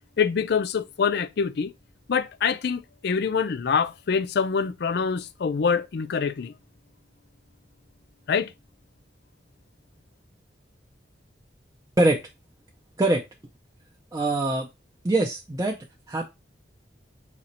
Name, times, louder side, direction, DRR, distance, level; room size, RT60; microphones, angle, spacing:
voice 1, 0.2-1.7 2.1-6.5 8.3-8.5, left 6 dB, 65° left, 0.4 m, -25 dB
voice 2, 14.1-14.7 15.0-15.8 16.1-16.2, right 2 dB, 20° right, 0.5 m, -22 dB
4.1 x 2.9 x 4.2 m
head